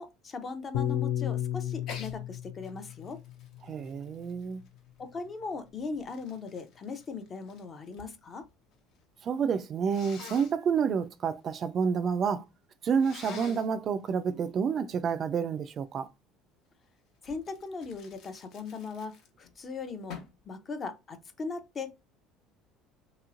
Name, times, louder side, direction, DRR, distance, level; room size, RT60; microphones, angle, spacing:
voice 1, 0.0-3.2 5.0-8.5 17.2-20.2 20.5-22.1, left 4 dB, 35° left, 0.6 m, -39 dB
Piano, 0.7-5.2, left 11 dB, 85° left, 0.5 m, -35 dB
Sneeze, 1.8-2.2 2.6-5.0 5.7-8.1 8.4-9.0 9.9-10.5 13.0-13.7 17.2-19.5 20.1-20.4, left 6 dB, 65° left, 0.8 m, -47 dB
voice 2, 3.6-4.6 9.2-12.4 12.8-16.1, right 6 dB, 40° right, 0.3 m, -29 dB
3.0 x 3.0 x 2.4 m
supercardioid pair, 110°, 0 cm